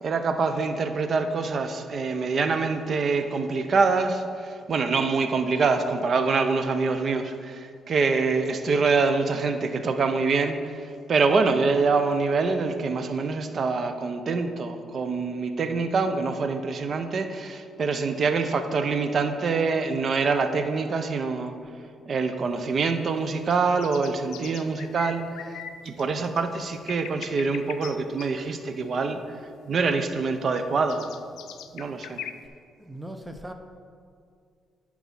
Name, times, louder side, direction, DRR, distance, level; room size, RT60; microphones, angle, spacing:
voice 1, 0.0-21.5 22.1-25.6 25.8-29.4 29.7-31.1 31.7-32.2, right 4 dB, 50° right, 8 dB, 0.7 m, -25 dB
sound 1, 22.5-32.5, left 9 dB, 85° left, 0.4 m, -43 dB
voice 2, 32.8-33.5, right 1 dB, 10° right, 6 dB, 0.8 m, -38 dB
10.0 x 4.7 x 5.5 m, 2.3 s
cardioid pair, 90°, 0 cm